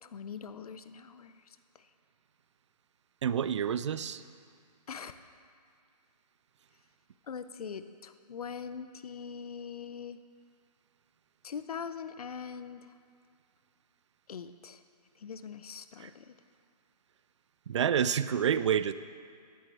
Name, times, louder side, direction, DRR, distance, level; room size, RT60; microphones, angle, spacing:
voice 1, 0.0-1.9 4.9-5.1 7.3-10.2 11.4-12.9 14.3-14.8 15.2-16.3, left 6 dB, 60° left, 11 dB, 0.7 m, -42 dB
voice 2, 3.2-4.2 16.0-16.1 17.7-18.9, right 8 dB, 45° right, 14 dB, 0.4 m, -28 dB
15.0 x 11.0 x 3.4 m, 2.2 s
figure-of-eight pair, 145°, 21 cm